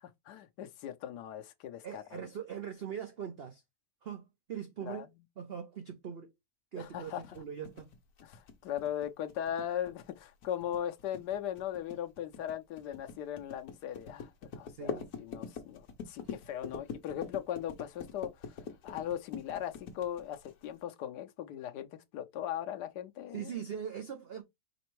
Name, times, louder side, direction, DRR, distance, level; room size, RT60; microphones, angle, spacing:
voice 1, 0.0-2.2 4.8-5.1 6.8-7.2 8.2-23.5, left 10 dB, 85° left, 1.3 m, -39 dB
voice 2, 1.8-3.6 4.0-5.1 5.4-6.3 6.7-7.9 14.7-15.1 16.2-16.3 23.3-24.4, right 8 dB, 50° right, 0.8 m, -41 dB
sound 1, 7.1-20.8, left 6 dB, 70° left, 1.4 m, -44 dB
5.2 x 3.3 x 3.1 m
omnidirectional pair, 1.7 m